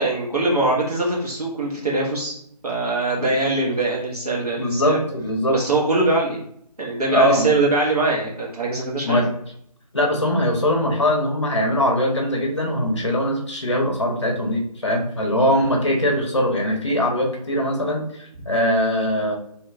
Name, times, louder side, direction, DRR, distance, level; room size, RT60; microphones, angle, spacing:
voice 1, 0.0-2.4 2.6-5.0 5.5-6.4 6.8-9.2, right 2 dB, 65° right, -4 dB, 1.3 m, -22 dB
voice 2, 4.6-5.6 7.1-7.5 9.1-9.3 9.9-19.3, equal, 45° left, 1 dB, 0.7 m, -21 dB
3.0 x 2.7 x 2.3 m, 0.68 s
figure-of-eight pair, 160°, 21 cm